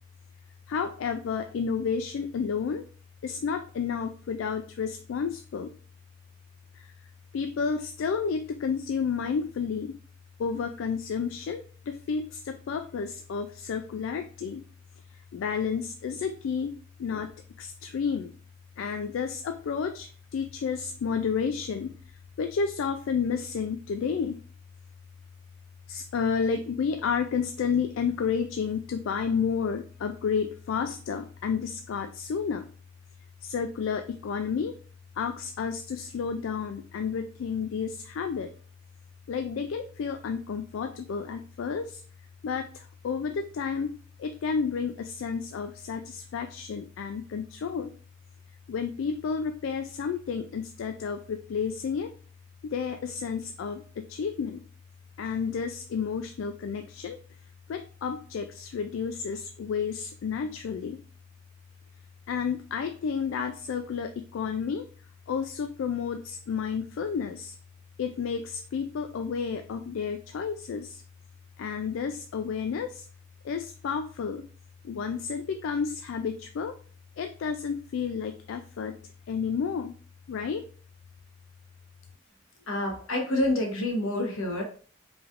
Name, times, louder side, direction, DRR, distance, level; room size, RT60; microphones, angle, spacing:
voice 1, 0.7-2.9 3.2-5.7 6.7-6.9 7.3-10.0 10.4-14.6 15.1-17.3 17.6-18.3 18.8-21.9 22.4-24.4 25.9-32.7 33.4-34.7 35.2-38.5 39.3-42.0 42.4-47.9 48.7-52.1 52.6-54.6 55.2-57.2 57.7-61.0 62.3-64.9 65.3-67.6 68.0-71.0 71.6-73.1 73.4-74.5 74.8-76.8 77.2-79.0 79.3-80.0 80.3-80.6, left 6 dB, 65° left, 8 dB, 0.3 m, -31 dB
voice 2, 82.7-84.6, left 1 dB, 85° left, 1 dB, 1.2 m, -27 dB
4.9 x 3.4 x 2.5 m, 0.43 s
head